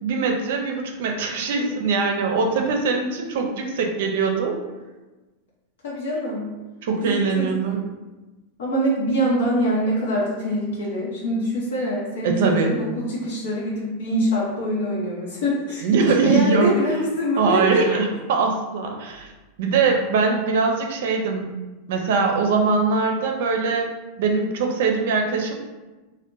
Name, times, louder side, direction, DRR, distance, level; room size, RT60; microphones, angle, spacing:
voice 1, 0.0-4.6 6.8-7.8 12.2-12.8 15.8-17.0 17.4-19.3 19.6-21.5 21.9-23.9 24.2-25.5, right 4 dB, 70° right, 2 dB, 0.4 m, -22 dB
voice 2, 5.8-6.5 7.0-7.6 8.6-15.8 16.2-18.0, equal, 90° left, -5 dB, 0.8 m, -24 dB
2.5 x 2.1 x 3.7 m, 1.2 s
supercardioid pair, 145°, 0 cm